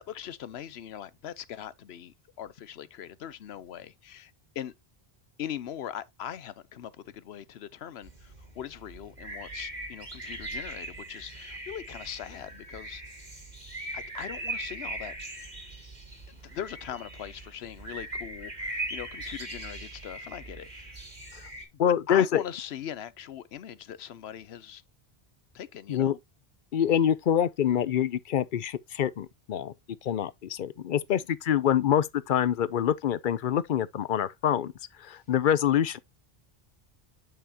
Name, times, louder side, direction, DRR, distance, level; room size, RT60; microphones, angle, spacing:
voice 1, 0.1-4.7 5.4-13.0 13.9-15.1 16.3-20.9 22.1-24.8 25.5-26.2 31.1-31.2, left 10 dB, 85° left, 0.9 m, -41 dB
sound 1, 8.0-21.6, right 2 dB, 45° right, 2.5 m, -40 dB
voice 2, 21.8-22.4 25.9-26.1 26.7-29.7 30.0-34.7 35.0-36.0, left 9 dB, 60° left, 0.7 m, -26 dB
8.9 x 5.6 x 2.8 m
omnidirectional pair, 1.0 m